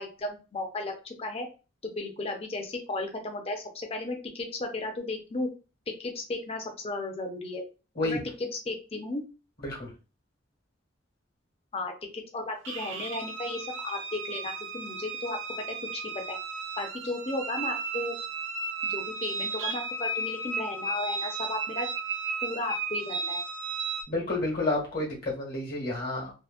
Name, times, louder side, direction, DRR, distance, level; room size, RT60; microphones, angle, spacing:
voice 1, 0.0-1.5 1.8-5.5 5.9-7.6 8.0-9.2 11.7-15.4 15.9-16.0 16.3-16.4 16.8-18.2 18.8-21.9 22.4-23.4, left 2 dB, 35° left, 4 dB, 0.5 m, -34 dB
sound 1, 12.6-24.0, right 4 dB, 75° right, 0.4 m, -34 dB
voice 2, 24.1-26.3, left 2 dB, 55° left, -3 dB, 1.3 m, -30 dB
2.8 x 2.2 x 2.3 m, 0.32 s
head